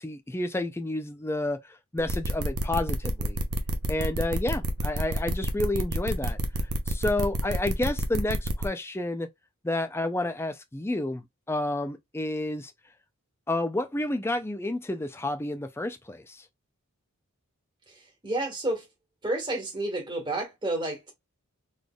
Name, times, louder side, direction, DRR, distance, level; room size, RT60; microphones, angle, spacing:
voice 1, 0.0-3.4 3.9-6.4 6.9-9.3 9.6-12.7 13.5-16.4, left 2 dB, 10° left, 0.4 m, -30 dB
sound 1, 2.0-8.7, right 1 dB, 80° right, 0.8 m, -28 dB
voice 2, 17.9-18.9 19.2-21.1, right 2 dB, 20° right, 1.6 m, -30 dB
4.1 x 3.3 x 2.3 m
head